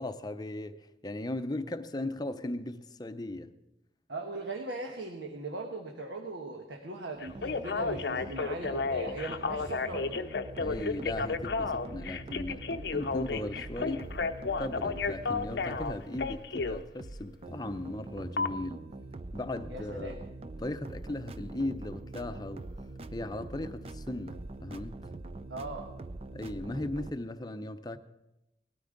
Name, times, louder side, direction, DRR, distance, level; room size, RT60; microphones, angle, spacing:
voice 1, 0.0-3.5 10.6-14.2 14.6-18.8 19.3-20.2 20.6-22.6 23.1-25.1 26.3-28.0, left 1 dB, 20° left, 0.6 m, -37 dB
voice 2, 4.1-10.2 19.7-20.2 25.5-25.9, right 2 dB, 85° right, 1.3 m, -39 dB
Telephone, 7.2-16.8 18.4-18.5, left 4 dB, 70° left, 0.6 m, -32 dB
sound 1, 7.3-27.1, right 2 dB, 35° right, 0.4 m, -44 dB
19.0 x 13.0 x 3.9 m
head